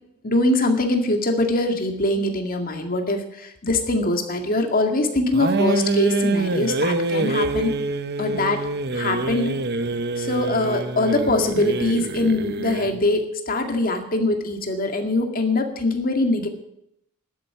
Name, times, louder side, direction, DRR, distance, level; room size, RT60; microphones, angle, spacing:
voice 1, 0.2-7.7 8.2-8.6 8.9-9.6 10.2-16.5, left 2 dB, 45° left, 5 dB, 2.0 m, -23 dB
sound 1, 5.3-13.0, right 2 dB, 55° right, 0.8 m, -25 dB
12.5 x 8.8 x 9.0 m, 0.77 s
head